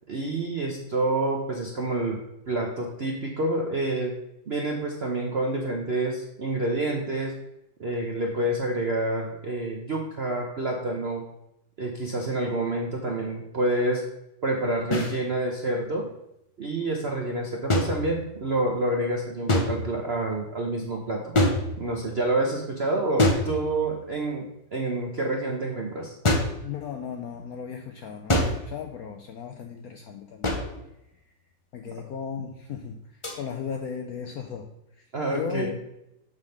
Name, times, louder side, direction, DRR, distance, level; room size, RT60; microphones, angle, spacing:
voice 1, 0.1-4.1 4.5-7.4 7.8-11.2 11.8-14.0 14.4-16.1 16.6-21.3 21.8-26.1 35.1-35.8, right 2 dB, 55° right, 1 dB, 0.7 m, -28 dB
sound 1, 14.9-15.2 17.7-18.5 19.5-20.1 21.3-22.1 23.2-24.0 26.2-26.7 28.3-28.8 30.4-30.9 33.2-33.4, left 1 dB, 40° left, 0.4 m, -25 dB
voice 2, 26.6-30.6 31.7-33.0 33.3-34.7 35.3-35.7, left 7 dB, 75° left, 4 dB, 0.8 m, -36 dB
7.3 x 3.7 x 6.4 m, 0.84 s
omnidirectional pair, 2.1 m